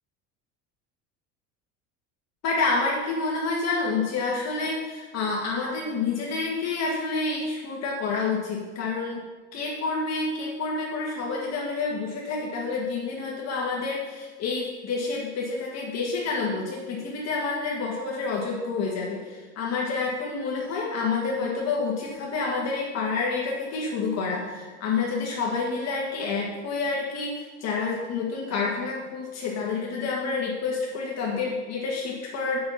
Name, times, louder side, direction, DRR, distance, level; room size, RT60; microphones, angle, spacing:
voice 1, 2.4-9.2 9.5-32.6, left 4 dB, 45° left, -3 dB, 1.7 m, -28 dB
7.6 x 5.7 x 7.1 m, 1.4 s
cardioid pair, 140°, 35 cm